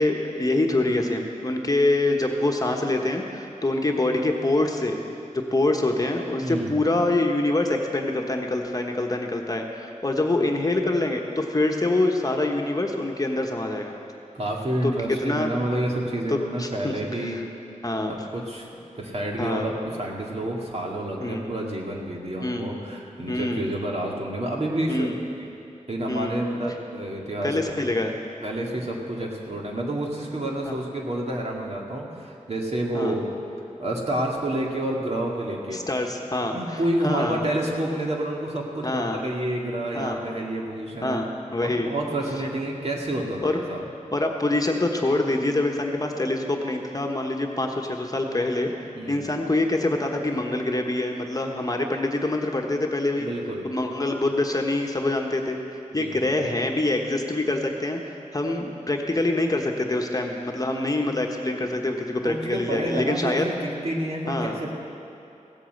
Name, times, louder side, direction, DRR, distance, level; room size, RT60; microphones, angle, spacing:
voice 1, 0.0-5.0 5.3-14.0 14.8-14.9 15.2-15.5 16.3-17.4 17.8-18.1 19.4-19.7 21.2-21.5 22.4-22.7 23.3-23.7 24.9-25.2 26.1-26.4 27.4-28.1 30.7-30.8 32.9-33.1 35.7-37.4 38.8-39.2 39.9-40.2 41.0-41.9 43.4-43.6 44.1-48.7 49.1-53.3 53.6-63.5 64.3-64.6, left 2 dB, 30° left, 2 dB, 1.2 m, -25 dB
voice 2, 6.4-6.7 14.3-17.4 18.1-19.7 20.0-25.1 25.4-25.5 25.9-27.9 28.4-33.3 33.8-35.8 36.4-41.2 41.6-43.8 48.9-49.2 53.2-53.7 55.9-56.5 62.2-64.7, right 1 dB, 50° right, -1 dB, 2.2 m, -29 dB
16.5 x 8.5 x 7.9 m, 2.7 s
wide cardioid pair, 80°, 13 cm